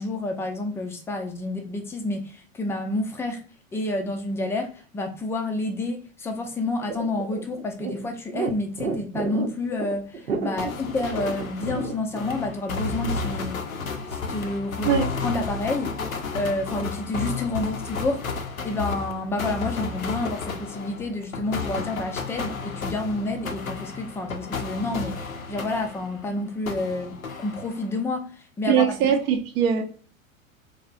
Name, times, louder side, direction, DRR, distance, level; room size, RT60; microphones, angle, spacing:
voice 1, 0.0-3.4 3.7-13.6 14.1-14.9 15.2-16.0 16.3-29.0, left 2 dB, 5° left, 0.4 m, -29 dB
sound 1, 6.9-12.2, right 4 dB, 80° right, 0.9 m, -31 dB
fluourlights starters motors jamming, 10.6-26.3 26.7-28.0, left 4 dB, 85° left, 0.7 m, -32 dB
voice 2, 28.7-29.8, right 8 dB, 50° right, 0.7 m, -21 dB
3.9 x 3.3 x 2.4 m
figure-of-eight pair, 95°, 40 cm